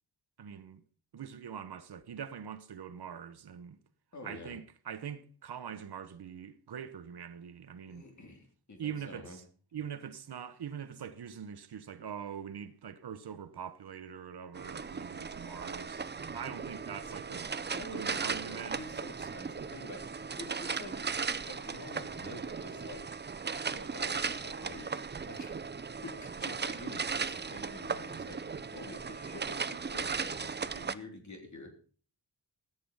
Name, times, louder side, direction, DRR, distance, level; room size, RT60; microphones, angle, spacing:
voice 1, 0.4-0.8 1.1-3.8 4.2-8.1 8.8-9.4 9.7-17.5 17.9-18.8, right 8 dB, 80° right, 1.1 m, -43 dB
voice 2, 4.1-4.6 7.8-9.4 17.7-21.0 21.5-23.2 23.7-25.6 26.0-31.7, left 2 dB, 45° left, 3.7 m, -48 dB
sound 1, 14.5-30.9, right 5 dB, 25° right, 0.5 m, -37 dB
14.0 x 8.7 x 5.6 m
wide cardioid pair, 140°, 39 cm